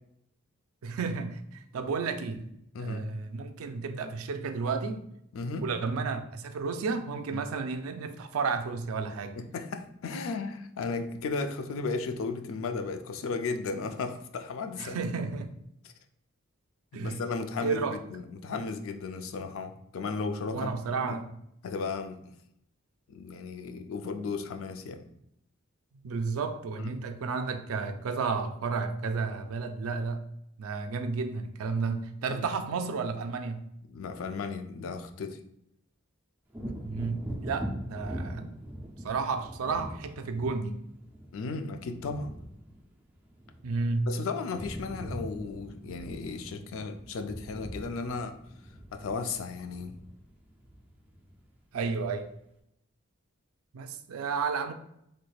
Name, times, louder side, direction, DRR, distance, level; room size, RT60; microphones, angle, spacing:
voice 1, 0.8-2.5 2.8-5.0 5.6-9.4 14.8-15.5 16.9-17.2 17.6-18.0 20.5-21.4 26.0-30.2 30.6-33.6 36.8-38.5 39.0-40.8 43.6-44.1 51.7-52.3 53.7-54.7, right 4 dB, 85° right, 8 dB, 0.4 m, -32 dB
voice 2, 2.7-3.1 5.3-5.7 7.3-7.4 9.4-15.0 15.8-15.9 16.9-21.2 21.6-22.2 23.1-25.1 26.8-26.9 32.3-32.4 33.9-35.4 41.3-42.3 44.1-48.4 48.9-50.0, left 4 dB, 75° left, 7 dB, 0.4 m, -35 dB
Wind / Thunder, 36.5-44.1 44.4-51.6 52.0-52.2, equal, 10° right, 0.3 m, -42 dB
3.2 x 3.2 x 2.3 m, 0.76 s
head